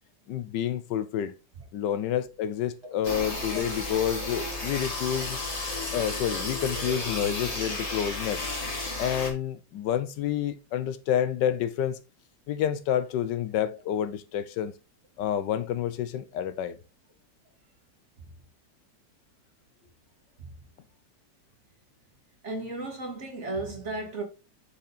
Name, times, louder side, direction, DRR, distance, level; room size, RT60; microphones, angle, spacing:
voice 1, 0.3-1.3 1.7-5.4 5.9-8.4 9.0-12.0 12.5-14.7 15.2-16.8, left 10 dB, 85° left, 1.3 m, -29 dB
sound 1, 3.0-9.3, left 2 dB, 40° left, 2.2 m, -33 dB
voice 2, 22.4-24.2, right 2 dB, 40° right, 2.1 m, -34 dB
6.5 x 5.6 x 3.9 m
omnidirectional pair, 1.9 m